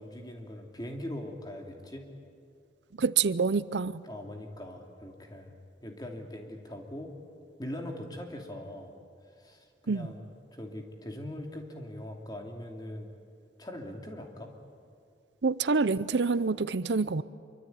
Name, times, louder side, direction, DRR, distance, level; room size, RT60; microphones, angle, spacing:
voice 1, 0.0-2.1 4.0-5.5 5.8-7.1 7.6-8.9 9.4-10.2 10.5-13.1 13.6-14.5, left 1 dB, 20° left, 2 dB, 2.9 m, -41 dB
voice 2, 3.0-4.0 9.9-10.1 15.4-17.2, right 4 dB, 75° right, 16 dB, 0.6 m, -27 dB
25.5 x 24.0 x 9.4 m, 2.3 s
head